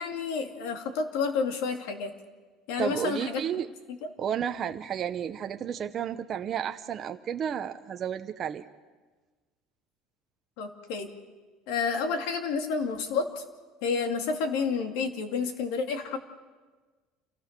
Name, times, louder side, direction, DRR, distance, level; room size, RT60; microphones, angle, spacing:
voice 1, 0.0-2.1 2.7-3.4 10.6-11.1 11.7-13.4 13.8-16.2, left 5 dB, 70° left, 5 dB, 2.5 m, -30 dB
voice 2, 2.8-3.7 4.2-8.6, right 8 dB, 30° right, 6 dB, 0.7 m, -32 dB
28.0 x 17.0 x 6.7 m, 1.3 s
cardioid pair, 175°, 0 cm